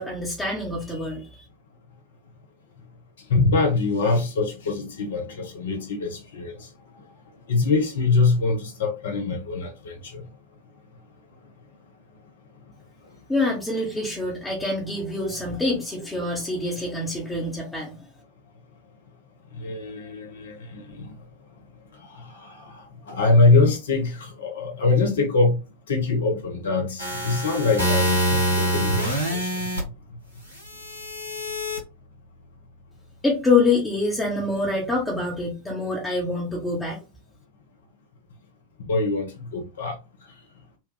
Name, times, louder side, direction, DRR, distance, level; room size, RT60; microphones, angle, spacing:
voice 1, 0.0-1.4 13.3-18.1 33.2-37.0, left 3 dB, 10° left, 0.9 m, -25 dB
voice 2, 3.3-6.7 7.5-10.2 19.6-21.1 22.0-25.6 25.9-29.7 38.8-40.0, left 3 dB, 65° left, 0.8 m, -24 dB
sound 1, 27.0-29.8 30.7-31.8, right 1 dB, 80° right, 1.4 m, -25 dB
4.2 x 2.3 x 2.2 m
figure-of-eight pair, 90°, 0 cm